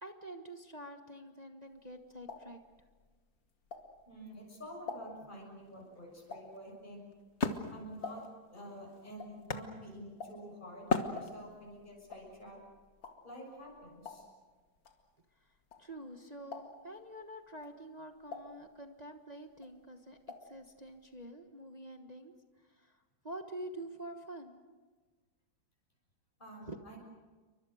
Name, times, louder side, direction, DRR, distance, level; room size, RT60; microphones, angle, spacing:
voice 1, 0.0-2.6 15.8-22.3 22.7-24.6 26.7-26.8, right 1 dB, 25° right, 4 dB, 1.2 m, -47 dB
sound 1, 1.7-4.3 4.6-8.6 8.8-16.1 16.4-17.0 17.5-19.2 19.5-20.6 20.8-20.9 21.2-21.3, left 4 dB, 65° left, 2.8 m, -49 dB
voice 2, 4.1-7.0 7.7-8.2 8.5-12.6 13.2-14.3 26.4-27.0, equal, 20° left, -1 dB, 7.0 m, -49 dB
Wood, 5.7-10.4 10.9-11.8, left 4 dB, 40° left, 1.5 m, -37 dB
29.5 x 24.0 x 6.5 m, 1.3 s
omnidirectional pair, 2.2 m